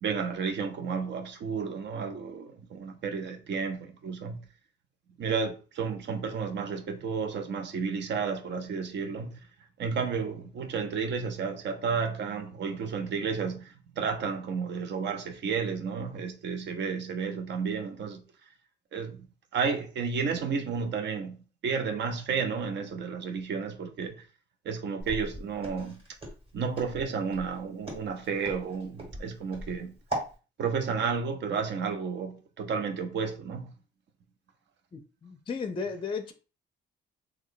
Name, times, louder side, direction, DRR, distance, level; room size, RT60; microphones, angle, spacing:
voice 1, 0.0-4.4 5.2-9.4 9.8-18.2 18.9-19.2 19.5-21.4 21.6-24.2 24.6-26.0 26.5-29.9 30.6-33.7, right 5 dB, 65° right, 0.7 m, -32 dB
Walk footsteps, 25.0-30.3, right 1 dB, 30° right, 1.9 m, -38 dB
voice 2, 34.9-36.3, left 5 dB, 25° left, 0.4 m, -35 dB
3.0 x 2.3 x 3.9 m
cardioid pair, 90°, 20 cm